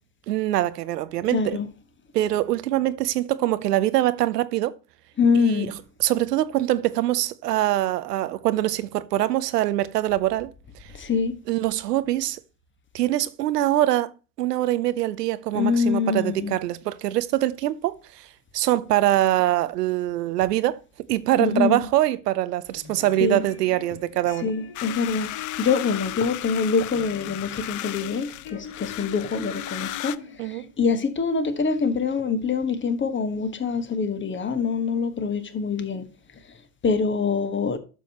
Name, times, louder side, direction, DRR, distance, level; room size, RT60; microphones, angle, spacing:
voice 1, 0.3-1.6 2.1-4.7 5.4-5.7 6.0-10.5 11.5-12.4 12.9-14.1 14.4-18.3 18.5-20.8 21.1-24.5 30.4-30.6, right 14 dB, 80° right, 0.8 m, -23 dB
voice 2, 1.3-1.7 5.2-5.7 11.0-11.4 15.5-16.5 21.4-21.8 23.2-23.4 24.4-25.3 25.6-30.2 30.8-36.1 36.8-37.8, left 5 dB, 25° left, 1.6 m, -24 dB
sound 1, 22.7-30.7, left 8 dB, 60° left, 3.6 m, -43 dB
sound 2, 24.7-30.2, left 15 dB, 40° left, 0.6 m, -35 dB
11.5 x 7.0 x 3.0 m
hypercardioid pair, 75°, 47 cm